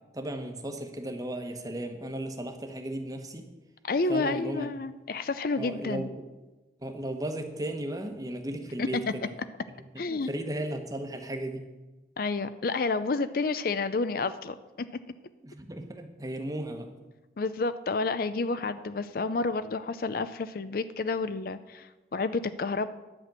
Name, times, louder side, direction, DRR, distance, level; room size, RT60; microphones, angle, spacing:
voice 1, 0.0-3.5 4.1-4.7 5.6-6.2 6.8-9.4 9.7-11.7 15.4-16.9, right 1 dB, 20° right, 6 dB, 1.1 m, -35 dB
voice 2, 3.9-6.1 8.8-8.9 10.0-10.3 12.2-15.0 17.4-22.9, left 3 dB, 55° left, 13 dB, 0.5 m, -30 dB
11.0 x 6.1 x 8.9 m, 1.1 s
head